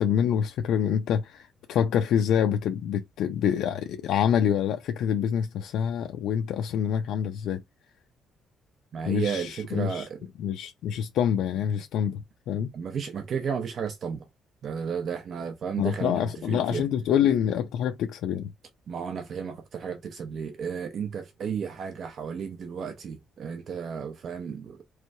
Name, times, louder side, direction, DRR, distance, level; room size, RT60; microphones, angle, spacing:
voice 1, 0.0-7.6 9.1-10.1 10.4-12.7 15.8-18.5, left 9 dB, 80° left, 0.4 m, -26 dB
voice 2, 8.9-10.3 12.7-14.3 14.6-16.8 18.9-24.8, right 6 dB, 45° right, 0.7 m, -33 dB
4.4 x 3.2 x 2.6 m
cardioid pair, 155°, 0 cm